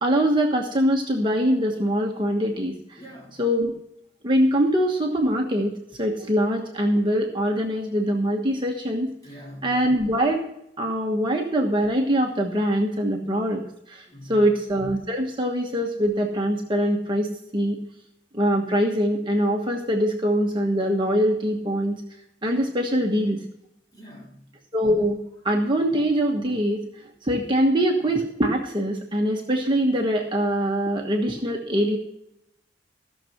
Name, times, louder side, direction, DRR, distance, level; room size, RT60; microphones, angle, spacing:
voice 1, 0.0-3.0 3.4-3.7 4.2-5.7 6.0-9.1 9.6-10.5 10.8-17.8 18.3-22.0 22.4-23.4 24.7-26.8 27.2-32.0, equal, 25° right, 1 dB, 1.3 m, -23 dB
voice 2, 3.0-3.4 9.2-9.7 14.1-14.4 23.9-24.4, equal, 20° left, -3 dB, 4.0 m, -43 dB
15.0 x 6.6 x 5.8 m, 0.79 s
head